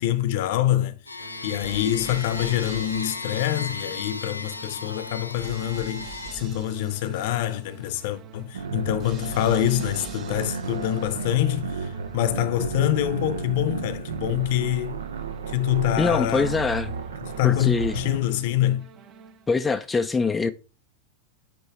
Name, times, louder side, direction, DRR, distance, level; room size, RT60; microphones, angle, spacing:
voice 1, 0.0-15.0 15.5-16.6 17.4-18.9, left 12 dB, 50° left, 0.8 m, -25 dB
sound 1, 1.1-6.3, left 3 dB, 85° left, 0.6 m, -36 dB
sound 2, 1.2-19.7, right 4 dB, 35° right, 0.9 m, -45 dB
sound 3, 8.5-18.2, right 5 dB, 70° right, 0.7 m, -33 dB
voice 2, 16.0-16.9 17.4-18.0 19.5-20.5, left 4 dB, 15° left, 0.5 m, -23 dB
9.1 x 3.0 x 4.6 m
figure-of-eight pair, 90°, 0 cm